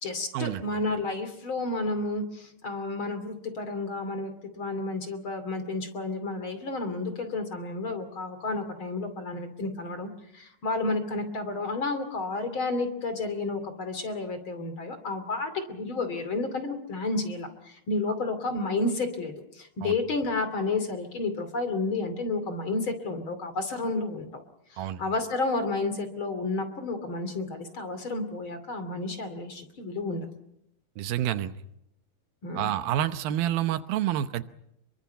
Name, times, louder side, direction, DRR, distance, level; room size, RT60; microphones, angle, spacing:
voice 1, 0.0-24.3 24.7-30.3 32.4-32.7, left 3 dB, 40° left, 9 dB, 3.1 m, -31 dB
voice 2, 31.0-31.5 32.6-34.4, right 11 dB, 85° right, 11 dB, 2.8 m, -28 dB
28.0 x 23.0 x 5.7 m, 0.78 s
omnidirectional pair, 4.1 m